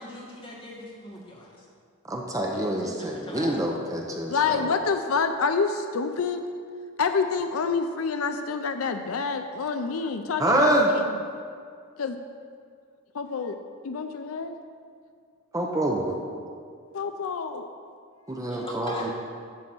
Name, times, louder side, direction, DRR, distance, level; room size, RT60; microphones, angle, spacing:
voice 1, 0.0-1.7 2.3-3.6 4.3-4.4 18.5-19.1, equal, 25° left, -4 dB, 1.9 m, -41 dB
voice 2, 2.1-4.7 10.4-10.9 15.5-16.2 18.3-19.1, right 1 dB, 15° right, 0 dB, 0.8 m, -26 dB
voice 3, 4.3-6.4 7.0-11.0 12.0-12.2 13.1-13.6 13.8-14.6 16.9-17.7 18.3-18.4, left 5 dB, 70° left, 7 dB, 0.5 m, -27 dB
11.5 x 4.1 x 7.6 m, 2.2 s
head